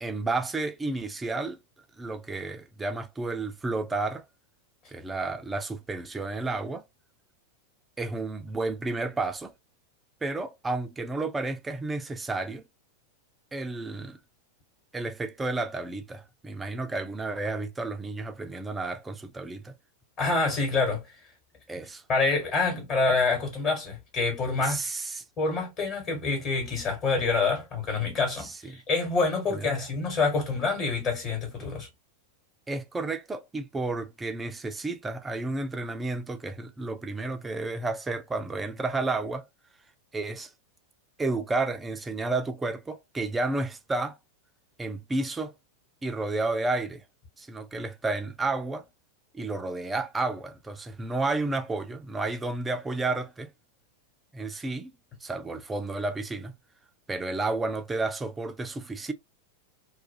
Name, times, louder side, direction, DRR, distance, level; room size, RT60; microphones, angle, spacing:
voice 1, 0.0-1.6 2.0-4.2 4.9-6.8 8.0-9.5 10.2-12.6 13.5-14.2 14.9-19.7 21.7-22.0 24.6-25.2 28.4-28.7 29.5-29.7 32.7-39.4 40.1-40.5 41.2-44.2 44.8-45.5 46.0-47.0 47.4-48.9 49.3-53.5 54.3-54.9 55.2-56.5 57.1-59.1, right 3 dB, 15° right, 0.4 m, -31 dB
voice 2, 20.2-21.0 22.1-24.8 25.4-31.9, left 3 dB, 35° left, 1.3 m, -27 dB
2.4 x 2.3 x 2.7 m
figure-of-eight pair, 90°, 0 cm